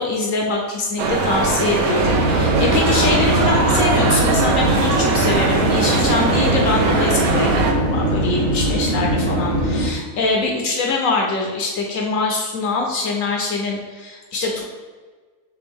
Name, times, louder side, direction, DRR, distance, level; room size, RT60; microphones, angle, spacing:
voice 1, 0.0-14.6, left 3 dB, 70° left, 0 dB, 0.8 m, -23 dB
sound 1, 1.0-7.7, right 4 dB, 70° right, 1.0 m, -20 dB
sound 2, 1.9-9.9, right 1 dB, 45° right, 0.6 m, -21 dB
3.6 x 3.4 x 3.4 m, 1.4 s
omnidirectional pair, 1.7 m